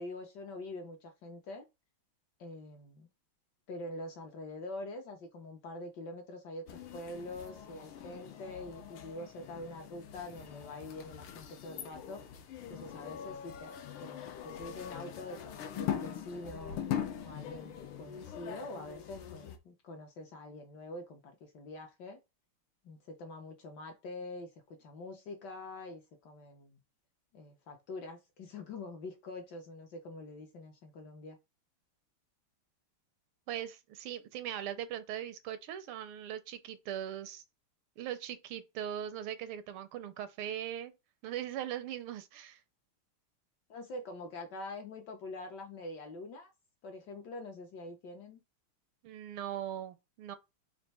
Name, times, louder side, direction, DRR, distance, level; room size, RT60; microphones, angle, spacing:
voice 1, 0.0-1.7 2.4-3.1 3.7-12.2 12.7-16.8 17.2-22.2 22.8-24.5 24.8-26.8 27.3-31.4 43.7-46.5 46.8-48.4, left 2 dB, 65° left, 1.2 m, -45 dB
sound 1, 6.7-19.6, left 9 dB, 85° left, 1.6 m, -42 dB
voice 2, 33.5-37.4 38.0-40.9 41.2-42.6 49.0-50.4, right 10 dB, 80° right, 1.5 m, -40 dB
4.4 x 2.5 x 4.0 m
omnidirectional pair, 2.4 m